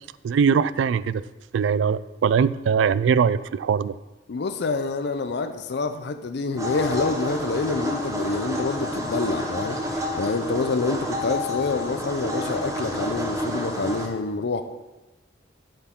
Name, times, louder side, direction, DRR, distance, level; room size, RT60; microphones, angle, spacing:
voice 1, 0.2-1.2 1.5-3.9, right 6 dB, 80° right, 17 dB, 0.3 m, -21 dB
voice 2, 4.3-14.6, left 3 dB, 65° left, 9 dB, 0.5 m, -27 dB
sound 1, 6.6-14.1, equal, 20° right, 1.1 m, -29 dB
8.1 x 8.0 x 3.7 m, 1.1 s
head